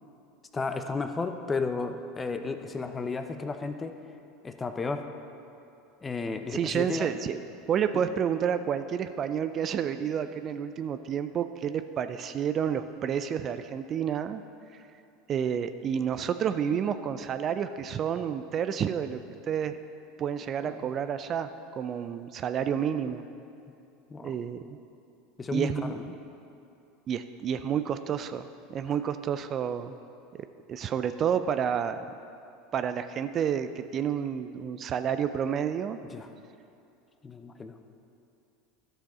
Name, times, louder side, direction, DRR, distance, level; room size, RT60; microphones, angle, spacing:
voice 1, 0.5-3.9 4.4-5.1 6.0-7.1 20.7-20.8 24.1-24.3 25.4-26.2 36.1-36.3 37.2-37.8, left 4 dB, 20° left, 7 dB, 0.7 m, -33 dB
voice 2, 6.5-7.4 7.7-14.4 15.3-19.2 19.5-19.8 20.2-21.5 21.8-23.2 24.2-24.8 25.5-25.9 27.1-29.9 30.3-32.1 32.7-36.0, right 8 dB, 40° right, 10 dB, 0.4 m, -30 dB
13.0 x 6.9 x 4.3 m, 2.6 s
hypercardioid pair, 80°, 0 cm